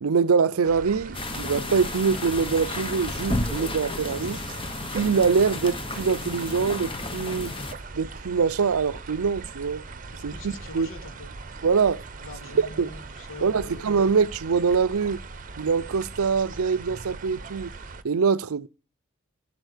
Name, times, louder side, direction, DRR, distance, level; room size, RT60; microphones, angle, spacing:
voice 1, 0.0-4.4 4.9-7.5 7.9-9.8 10.2-10.9 11.6-12.0 12.6-12.9 13.4-15.2 15.6-17.7 18.0-18.7, right 5 dB, 90° right, 0.5 m, -24 dB
sound 1, 0.6-18.0, right 4 dB, 40° right, 0.8 m, -40 dB
sound 2, 1.1-7.7, left 2 dB, 25° left, 1.0 m, -32 dB
voice 2, 10.1-11.3 12.2-13.9, left 2 dB, 70° left, 2.6 m, -43 dB
13.5 x 8.0 x 6.6 m
head